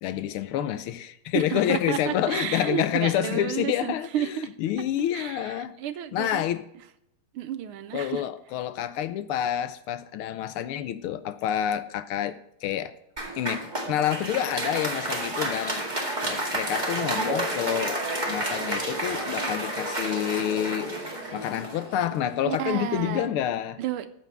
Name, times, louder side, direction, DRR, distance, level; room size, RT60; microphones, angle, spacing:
voice 1, 0.0-5.8 6.1-6.7 7.9-12.9 13.4-16.0 16.2-18.0 18.3-20.9 21.3-23.8, left 11 dB, 85° left, 1.6 m, -28 dB
voice 2, 1.3-4.5 5.1-6.4 7.3-8.2 22.5-23.4 23.8-24.1, right 10 dB, 90° right, 1.7 m, -31 dB
Applause, 13.2-22.5, right 1 dB, 20° right, 2.0 m, -30 dB
14.0 x 4.8 x 6.8 m
omnidirectional pair, 2.4 m